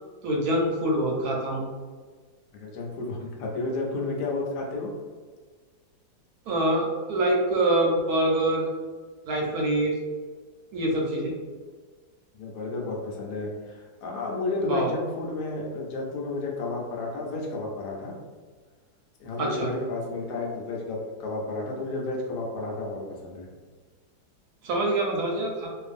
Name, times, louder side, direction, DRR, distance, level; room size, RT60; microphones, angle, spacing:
voice 1, 0.2-1.6 6.5-8.6 9.3-9.9 10.7-11.3 14.6-14.9 19.4-19.7 24.6-25.7, right 1 dB, 70° right, -2 dB, 1.0 m, -25 dB
voice 2, 2.5-4.9 12.4-18.1 19.2-23.5, left 2 dB, 75° left, -2 dB, 1.1 m, -32 dB
2.5 x 2.4 x 2.4 m, 1.5 s
omnidirectional pair, 1.9 m